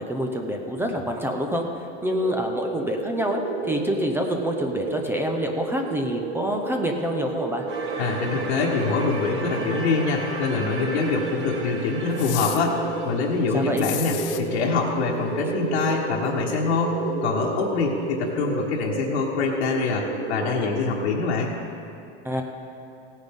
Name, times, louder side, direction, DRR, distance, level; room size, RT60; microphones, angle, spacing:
voice 1, 0.0-7.6 13.5-13.9 22.2-22.4, equal, 5° right, 3 dB, 0.6 m, -27 dB
sound 1, 2.1-21.1, right 3 dB, 90° right, 1.7 m, -32 dB
sound 2, 7.7-14.5, right 3 dB, 35° right, 1.6 m, -36 dB
voice 2, 8.0-21.5, left 4 dB, 80° left, -4 dB, 1.4 m, -25 dB
sound 3, 12.2-12.6 13.8-14.4, left 13 dB, 55° left, 0.8 m, -32 dB
16.5 x 9.1 x 3.6 m, 2.9 s
supercardioid pair, 140°, 34 cm